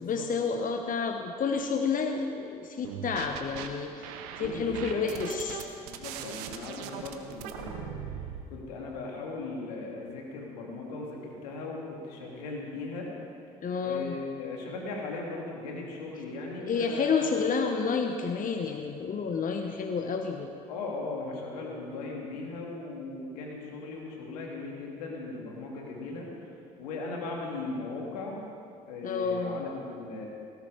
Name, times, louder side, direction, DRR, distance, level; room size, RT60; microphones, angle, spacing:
voice 1, 0.0-5.6 13.6-14.2 16.6-20.5 29.0-29.6, left 5 dB, 45° left, 5 dB, 1.2 m, -30 dB
sound 1, 2.8-3.7 4.0-8.4, right 9 dB, 75° right, 1.2 m, -39 dB
voice 2, 4.3-8.0 8.5-13.1 13.8-17.4 20.7-26.3 26.8-28.4 28.9-30.3, left 3 dB, 80° left, -1 dB, 2.9 m, -38 dB
18.0 x 15.5 x 5.1 m, 2.7 s
hypercardioid pair, 55°, 20 cm